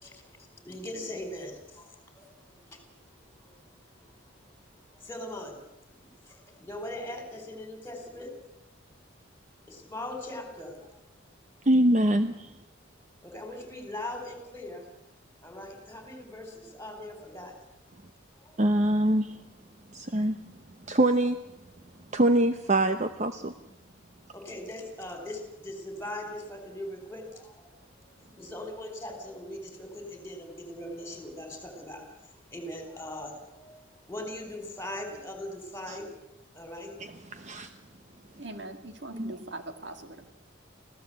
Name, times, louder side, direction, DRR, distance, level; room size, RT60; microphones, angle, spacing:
voice 1, 0.0-2.8 3.4-3.5 4.9-5.6 6.0-8.3 9.7-10.9 13.2-14.9 15.4-17.5 18.4-18.6 24.3-32.0 32.5-36.1 36.5-36.9, left 1 dB, 10° left, 5 dB, 4.6 m, -40 dB
voice 2, 11.7-12.5 18.6-19.3 19.9-20.4 20.9-21.4 22.1-23.5 35.9-36.0 37.3-37.7 39.1-39.3, right 1 dB, 35° right, 9 dB, 0.9 m, -24 dB
voice 3, 38.4-40.3, right 2 dB, 60° right, 7 dB, 2.0 m, -41 dB
26.0 x 16.0 x 8.1 m, 0.88 s
head